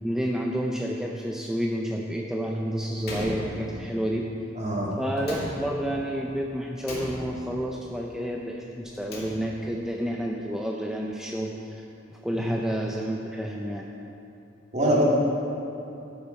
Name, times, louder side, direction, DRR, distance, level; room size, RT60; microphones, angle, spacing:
voice 1, 0.0-4.3 5.0-11.8 12.1-13.9, equal, 5° right, -1 dB, 0.5 m, -30 dB
Slam, 3.0-4.1 5.2-6.1 6.8-7.7 8.8-9.8, equal, 55° left, 2.8 m, -37 dB
voice 2, 4.6-4.9 12.3-12.4 14.7-15.0, right 1 dB, 35° right, -5 dB, 2.2 m, -23 dB
12.0 x 7.2 x 5.3 m, 2.8 s
head